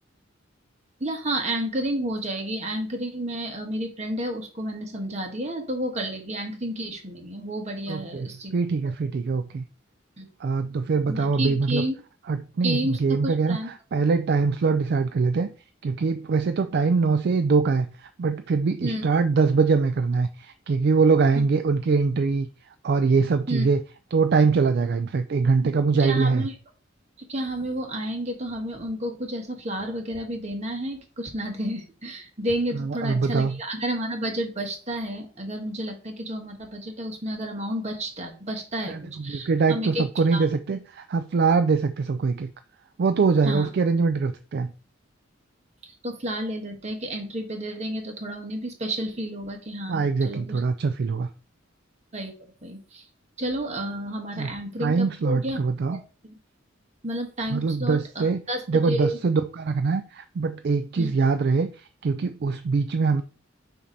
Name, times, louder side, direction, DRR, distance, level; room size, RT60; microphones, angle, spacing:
voice 1, 1.0-8.6 10.2-10.3 11.1-11.9 12.6-13.7 18.8-19.0 21.3-21.4 23.5-23.7 26.0-26.5 27.2-40.0 40.3-40.5 43.4-43.7 46.0-50.6 52.1-53.0 53.4-55.6 55.9-56.4 57.0-59.2 61.0-61.1, right 1 dB, 35° right, 3 dB, 1.3 m, -31 dB
voice 2, 7.9-8.3 8.5-9.6 10.4-11.8 12.3-13.6 13.9-15.5 15.8-22.5 22.8-23.8 24.1-26.4 32.7-33.6 38.9-42.5 43.0-44.7 49.9-51.3 54.3-54.5 54.8-56.0 57.5-58.4 58.7-63.2, right 4 dB, 55° right, 10 dB, 0.4 m, -23 dB
7.0 x 2.9 x 5.1 m, 0.37 s
head